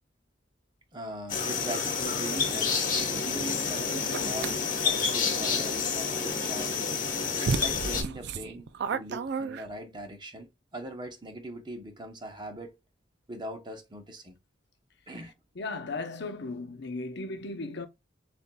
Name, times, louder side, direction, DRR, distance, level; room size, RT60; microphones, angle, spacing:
voice 1, 0.9-2.8 3.2-6.7 7.4-12.8 13.3-14.4 15.1-15.3, right 1 dB, 25° right, 0.9 m, -41 dB
sound 1, 1.3-8.0, left 5 dB, 45° left, 1.2 m, -29 dB
sound 2, 4.1-4.6 6.8-6.9 7.4-10.0, right 5 dB, 65° right, 0.4 m, -32 dB
voice 2, 15.6-17.9, left 3 dB, 65° left, 0.8 m, -36 dB
6.9 x 2.5 x 2.3 m
head